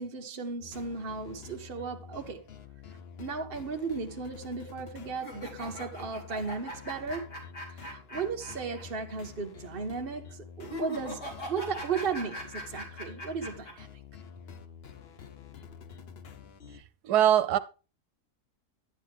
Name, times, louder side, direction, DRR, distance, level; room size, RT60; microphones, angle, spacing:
voice 1, 0.0-2.4 3.2-7.4 7.7-13.9, right 5 dB, 40° right, 1.0 m, -35 dB
sound 1, 0.6-16.8, left 7 dB, 50° left, 0.9 m, -48 dB
sound 2, 5.1-8.8 9.1-9.2 10.6-13.7, left 1 dB, 85° left, 3.4 m, -41 dB
voice 2, 17.0-17.6, right 11 dB, 75° right, 1.2 m, -22 dB
11.0 x 9.8 x 3.5 m
omnidirectional pair, 1.7 m